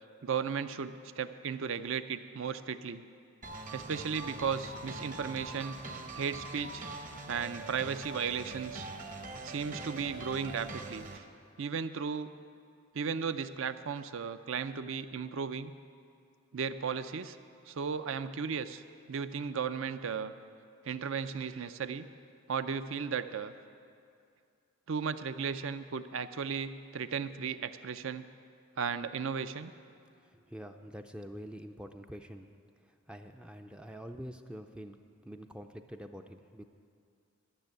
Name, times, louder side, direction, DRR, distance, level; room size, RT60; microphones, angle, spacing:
voice 1, 0.2-3.0 3.7-5.8 6.1-6.8 7.3-8.9 9.4-11.2 11.6-12.3 12.9-15.7 16.5-17.4 17.7-18.8 19.1-20.3 20.8-22.1 22.5-23.5 24.9-28.3 28.8-29.7, right 6 dB, 65° right, 12 dB, 0.5 m, -35 dB
sound 1, 3.4-11.2, right 2 dB, 40° right, 0.9 m, -43 dB
voice 2, 30.2-32.5 32.8-35.0 35.2-36.6, equal, 5° right, 6 dB, 0.3 m, -46 dB
12.5 x 6.7 x 8.9 m, 2.4 s
head